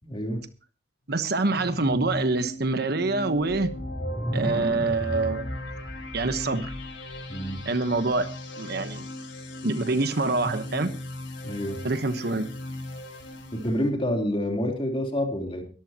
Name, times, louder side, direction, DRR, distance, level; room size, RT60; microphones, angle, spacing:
voice 1, 0.0-0.4 7.3-7.6 11.4-11.8 13.5-15.6, equal, 30° left, 2 dB, 3.6 m, -28 dB
voice 2, 1.1-3.7 4.3-5.5 6.1-6.7 7.6-9.1 9.6-10.9 11.8-12.5, right 3 dB, 55° right, 10 dB, 1.1 m, -26 dB
sound 1, 1.3-13.9, left 1 dB, 80° left, 4.8 m, -38 dB
sound 2, 3.5-7.2, equal, 5° right, 6.6 m, -34 dB
22.5 x 13.5 x 3.0 m, 0.36 s
head